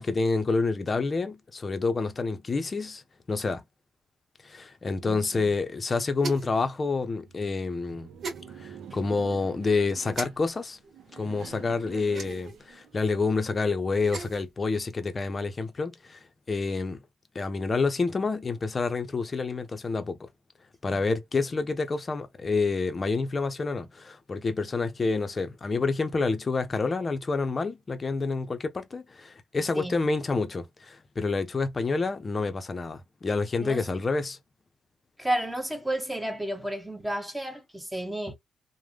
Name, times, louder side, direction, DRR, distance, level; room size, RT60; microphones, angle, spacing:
voice 1, 0.0-3.0 3.3-3.6 4.4-8.1 8.6-10.8 11.1-17.0 17.3-20.3 20.8-34.4, left 4 dB, 35° left, 0.5 m, -28 dB
voice 2, 5.0-5.4 20.9-21.0 29.7-30.0 33.6-33.9 35.2-38.3, right 1 dB, 10° right, 0.7 m, -32 dB
sound 1, 6.2-6.6 8.2-8.4 10.1-10.3 12.1-12.6 13.9-14.4, right 4 dB, 60° right, 1.4 m, -36 dB
Laughter, 7.1-13.4, right 7 dB, 85° right, 0.5 m, -48 dB
3.3 x 2.1 x 2.2 m
cardioid pair, 105°, 0 cm